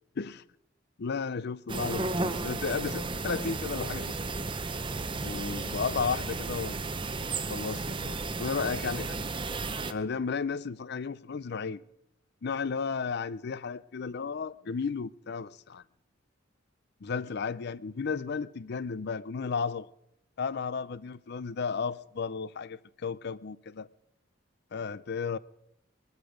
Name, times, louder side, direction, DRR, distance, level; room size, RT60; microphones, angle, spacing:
voice 1, 1.0-4.2 5.2-6.8 7.5-9.3 9.9-11.8 12.4-15.8 17.0-19.9 20.4-23.9 24.7-25.4, left 5 dB, 55° left, 0.5 m, -33 dB
sound 1, 1.7-9.9, right 3 dB, 25° right, 0.7 m, -34 dB
21.5 x 13.0 x 5.1 m
head